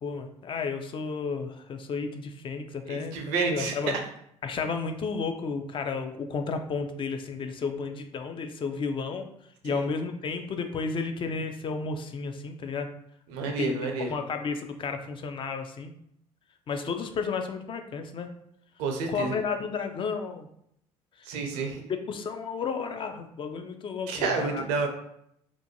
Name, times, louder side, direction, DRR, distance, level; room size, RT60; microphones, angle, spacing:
voice 1, 0.0-3.9 4.4-9.3 9.6-12.9 13.4-13.8 14.1-15.9 16.7-18.3 19.1-20.5 21.2-21.3 21.6-24.6, left 5 dB, 35° left, 7 dB, 0.3 m, -32 dB
voice 2, 2.9-3.7 9.7-9.9 13.3-14.1 18.8-19.4 21.3-21.8 24.1-24.9, right 4 dB, 70° right, 4 dB, 0.5 m, -29 dB
2.5 x 2.2 x 2.7 m, 0.72 s
hypercardioid pair, 55°, 15 cm